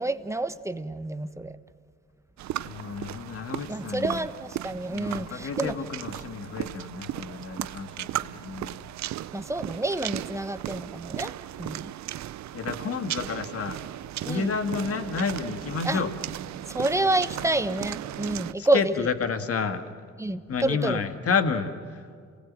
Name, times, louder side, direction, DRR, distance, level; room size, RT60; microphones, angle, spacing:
voice 1, 0.0-1.5 3.7-5.7 9.3-11.3 11.6-11.9 14.2-14.5 15.8-16.0 16.7-18.8 20.2-21.0, right 2 dB, 10° right, 10 dB, 1.2 m, -28 dB
sound 1, 2.4-18.5, right 13 dB, 65° right, 0.6 m, -36 dB
voice 2, 2.6-4.3 4.9-8.9 11.6-11.8 12.5-13.8 14.2-16.1 18.6-19.9 20.5-22.0, left 5 dB, 50° left, 8 dB, 1.9 m, -30 dB
28.5 x 19.0 x 7.6 m, 2.2 s
cardioid pair, 90°, 30 cm